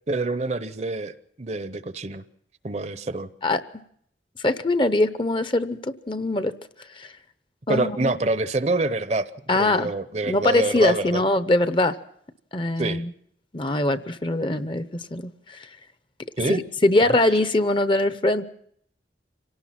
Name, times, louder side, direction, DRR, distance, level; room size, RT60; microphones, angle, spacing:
voice 1, 0.1-2.2 2.6-3.3 7.7-9.3 9.5-11.2 12.8-13.0 16.4-16.6, right 2 dB, 40° right, 13 dB, 0.7 m, -26 dB
voice 2, 4.4-6.5 7.0-7.1 7.7-8.1 9.5-9.9 10.2-12.0 12.5-13.1 13.5-15.7 16.5-18.4, left 2 dB, 30° left, 13 dB, 0.7 m, -22 dB
26.0 x 18.0 x 5.9 m, 0.68 s
head